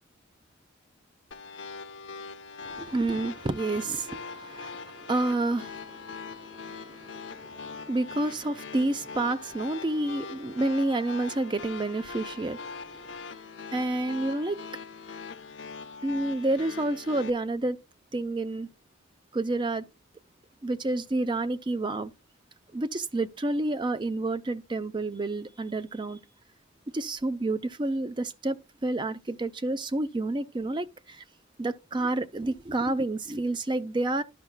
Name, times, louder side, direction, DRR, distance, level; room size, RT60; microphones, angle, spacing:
sound 1, 1.3-17.3, left 4 dB, 80° left, 0.7 m, -42 dB
voice 1, 2.6-13.1 13.7-14.6 16.0-17.8 18.1-18.7 19.3-19.8 20.6-22.1 22.7-26.2 26.9-31.2 31.6-34.2, right 2 dB, 25° right, 0.5 m, -29 dB
12.0 x 5.6 x 2.2 m
head